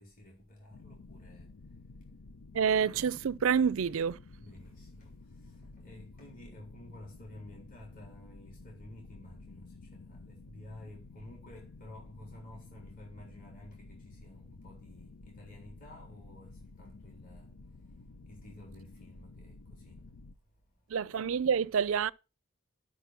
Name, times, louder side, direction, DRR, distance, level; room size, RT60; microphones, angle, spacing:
voice 1, 0.0-1.5 4.4-17.5 18.3-20.0, left 1 dB, 45° left, 3.7 m, -52 dB
sound 1, 0.7-20.4, left 3 dB, 90° left, 0.7 m, -52 dB
voice 2, 2.5-4.2 20.9-22.1, right 7 dB, 70° right, 0.4 m, -28 dB
11.5 x 6.3 x 5.8 m
head